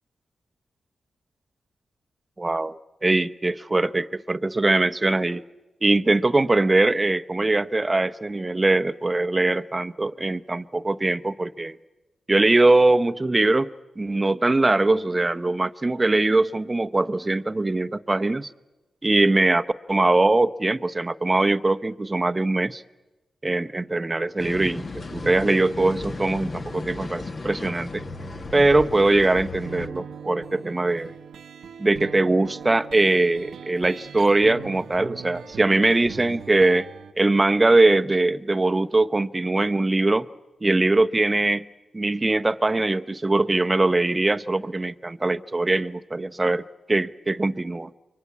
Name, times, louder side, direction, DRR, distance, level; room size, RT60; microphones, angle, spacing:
voice 1, 2.4-5.4 5.8-11.8 12.3-13.7 14.0-18.5 19.0-22.8 23.4-24.9 25.1-28.0 28.5-31.1 31.8-36.9 37.2-40.3 40.6-41.6 41.9-46.6 46.9-47.9, right 2 dB, 25° right, 12 dB, 0.9 m, -21 dB
sound 1, 24.4-29.9, left 3 dB, 45° left, 2.1 m, -35 dB
sound 2, 29.6-37.1, right 7 dB, 80° right, 1.0 m, -40 dB
28.5 x 23.5 x 8.5 m, 1.1 s
cardioid pair, 65°, 0 cm